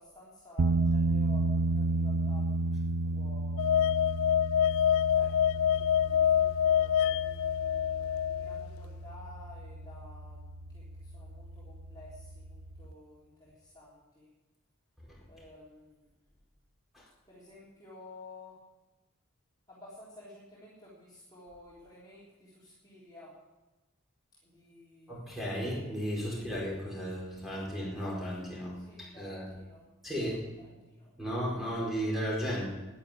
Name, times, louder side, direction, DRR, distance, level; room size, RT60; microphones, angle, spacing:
voice 1, 0.5-1.4 2.0-2.4 3.2-3.6 5.2-5.3 6.6-7.1 8.5-10.3 11.9-12.1 12.8-13.0 13.8-13.9 15.3-15.6 17.5-18.5 20.2-20.3 21.3-22.2 22.9-23.3 28.9-29.3, left 2 dB, 20° left, -9 dB, 3.5 m, -50 dB
sound 1, 0.6-12.9, right 2 dB, 70° right, 0.6 m, -33 dB
sound 2, 3.6-8.7, left 9 dB, 70° left, 0.4 m, -26 dB
voice 2, 25.1-28.7 29.2-29.5 30.0-30.4 31.2-32.7, equal, ahead, -5 dB, 4.8 m, -34 dB
11.5 x 10.5 x 8.8 m, 1.1 s
head